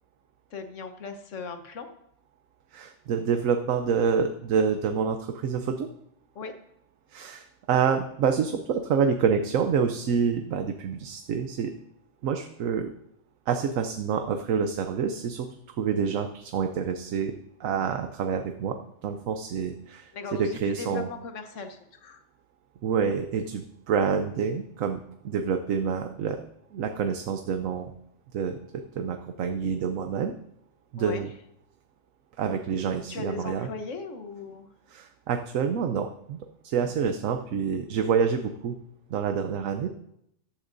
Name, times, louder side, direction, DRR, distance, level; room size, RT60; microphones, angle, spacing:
voice 1, 0.5-1.9 6.3-6.6 20.1-22.2 31.0-31.3 33.1-34.7 36.9-37.0, left 4 dB, 70° left, 7 dB, 1.4 m, -38 dB
voice 2, 2.7-5.9 7.1-11.7 12.2-12.9 13.5-21.1 22.8-26.4 26.7-28.0 28.3-30.3 30.9-31.3 32.4-33.7 34.9-36.4 36.6-38.8 39.1-39.9, right 6 dB, 85° right, 7 dB, 1.1 m, -27 dB
14.5 x 12.0 x 2.6 m, 0.77 s
omnidirectional pair, 1.4 m